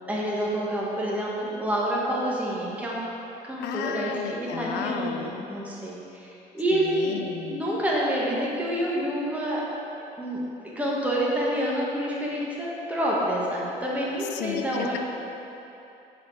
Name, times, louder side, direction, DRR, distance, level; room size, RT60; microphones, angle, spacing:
voice 1, 0.0-3.0 3.4-7.1 7.5-9.6 10.2-10.4 10.7-15.0, equal, 10° right, -5 dB, 1.2 m, -28 dB
voice 2, 3.6-5.4 6.7-7.6 14.2-15.0, left 8 dB, 85° left, 6 dB, 0.5 m, -34 dB
7.4 x 4.3 x 4.5 m, 2.9 s
cardioid pair, 110°, 17 cm